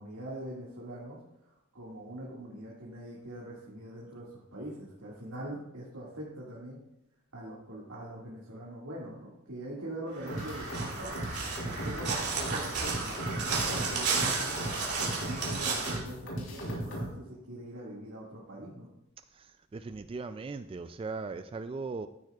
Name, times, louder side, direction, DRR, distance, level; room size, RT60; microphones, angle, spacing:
voice 1, 0.0-6.8 7.3-11.3 11.8-14.6 15.0-18.9, right 1 dB, 80° right, -6 dB, 2.1 m, -43 dB
Crow, 10.2-16.0, right 4 dB, 55° right, 3.0 m, -33 dB
sound 1, 10.3-17.1, right 1 dB, 75° left, 3.7 m, -38 dB
voice 2, 19.3-22.1, right 4 dB, 25° right, 11 dB, 0.3 m, -38 dB
14.0 x 9.1 x 2.4 m, 0.86 s
head